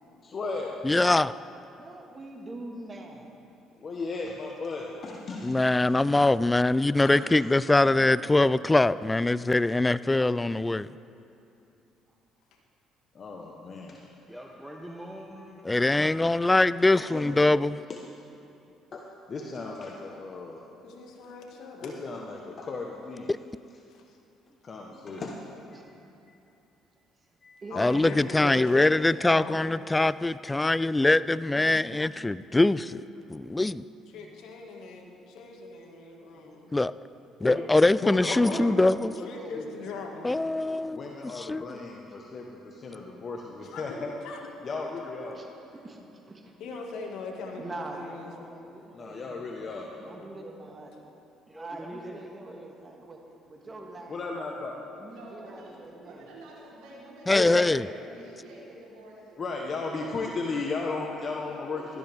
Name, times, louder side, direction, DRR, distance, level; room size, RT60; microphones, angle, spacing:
voice 1, 0.2-0.7 3.8-5.5 7.1-7.2 13.1-14.0 17.0-17.4 17.9-18.0 18.9-20.6 21.8-23.3 24.6-25.4 25.8-25.9 27.4-27.9 37.4-37.7 38.0-38.6 40.9-44.1 44.6-45.4 48.9-49.9 54.1-54.8 57.3-57.6 59.4-62.0, left 3 dB, 45° left, 0 dB, 1.2 m, -35 dB
voice 2, 0.8-1.3 5.4-10.9 15.6-17.8 23.3-23.4 27.8-33.0 33.3-33.8 36.7-36.9 37.4-39.1 40.2-41.0 41.3-41.8 57.3-57.9, left 2 dB, 15° left, 17 dB, 0.3 m, -23 dB
voice 3, 1.8-3.3 13.9-14.1 25.7-25.9 27.6-28.8 31.7-32.0 36.7-36.8 38.3-39.9 42.1-42.2 45.3-46.5 47.6-49.5 50.0-51.0 51.5-53.2 53.5-54.6 55.0-56.3, right 2 dB, 30° right, 2 dB, 1.8 m, -43 dB
voice 4, 14.3-15.6 16.0-16.3 34.1-34.3 42.9-43.0 47.3-47.6 48.6-49.5 49.9-50.0 51.0-51.1 51.5-52.2 52.5-52.6 54.7-54.9, equal, ahead, -1 dB, 1.1 m, -45 dB
voice 5, 20.8-22.1 23.9-24.0 27.7-29.8 34.1-36.7 38.6-38.7 39.2-40.4 43.6-44.5 45.0-45.1 46.6-48.6, left 3 dB, 70° left, 0 dB, 2.0 m, -40 dB
voice 6, 55.1-62.0, right 2 dB, 85° right, -6 dB, 3.7 m, -48 dB
17.0 x 13.0 x 3.5 m, 2.7 s
supercardioid pair, 75°, 0 cm